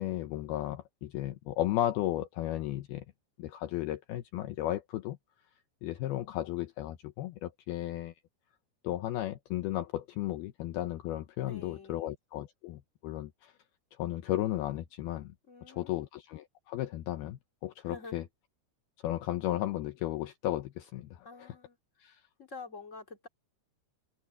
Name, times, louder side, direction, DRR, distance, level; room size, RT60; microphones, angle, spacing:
voice 1, 0.0-3.0 3.4-5.2 5.8-8.1 8.8-13.5 14.0-15.3 15.7-18.2 19.0-21.3 22.0-22.2, left 14 dB, 75° left, 2.5 m, -34 dB
voice 2, 11.4-12.1 15.5-16.1 17.8-18.2 21.2-21.8 22.1-23.3, left 4 dB, 30° left, 1.4 m, -48 dB
omnidirectional pair, 5.0 m